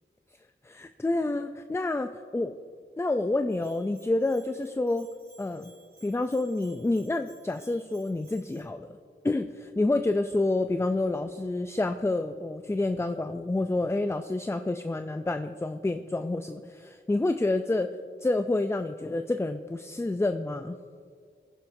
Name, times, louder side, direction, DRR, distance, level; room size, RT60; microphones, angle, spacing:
voice 1, 0.6-2.6 3.0-5.1 5.4-5.7 6.0-8.9 9.2-17.9 18.2-20.8, left 2 dB, 15° left, 8 dB, 0.3 m, -28 dB
Bell, 3.5-8.6, right 3 dB, 45° right, 2.4 m, -58 dB
14.5 x 10.5 x 2.6 m, 2.1 s
wide cardioid pair, 55°, 21 cm